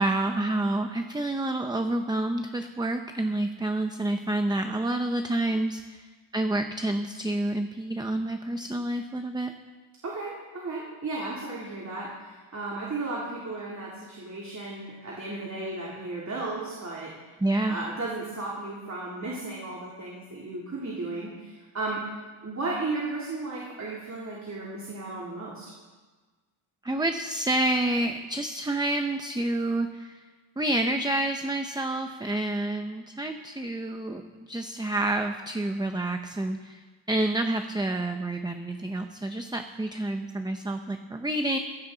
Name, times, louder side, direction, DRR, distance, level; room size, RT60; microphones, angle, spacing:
voice 1, 0.0-9.5 17.4-17.8 26.8-30.2 30.6-34.2 34.5-41.6, right 1 dB, 10° right, 6 dB, 0.6 m, -28 dB
voice 2, 10.0-17.1 17.7-22.0 22.4-25.7, right 2 dB, 35° right, -5 dB, 3.0 m, -34 dB
22.5 x 16.0 x 3.9 m, 1.3 s
wide cardioid pair, 170°, 50 cm